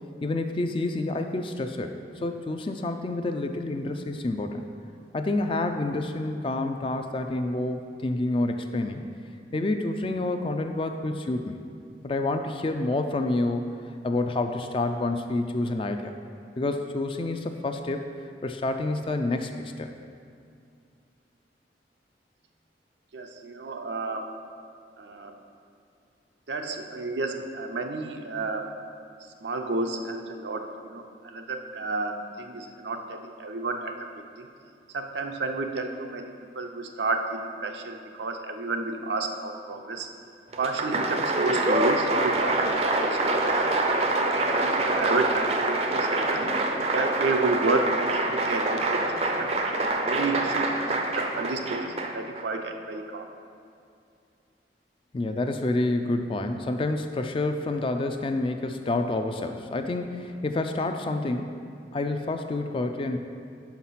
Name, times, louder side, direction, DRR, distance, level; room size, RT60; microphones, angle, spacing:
voice 1, 0.2-1.9 2.2-4.7 5.1-9.1 9.5-11.6 12.0-13.7 14.0-16.1 16.6-18.0 18.4-19.5 19.8-19.9 55.1-61.5 61.9-63.2, left 2 dB, 30° left, 6 dB, 0.3 m, -28 dB
voice 2, 23.1-24.3 25.0-25.3 26.5-28.7 29.4-33.9 34.3-34.5 34.9-40.1 40.6-43.6 44.3-46.4 46.9-49.5 50.0-53.3, right 3 dB, 80° right, 4 dB, 0.6 m, -31 dB
Applause, 40.5-52.4, right 2 dB, 35° right, 0.5 m, -25 dB
5.8 x 5.5 x 5.7 m, 2.4 s
head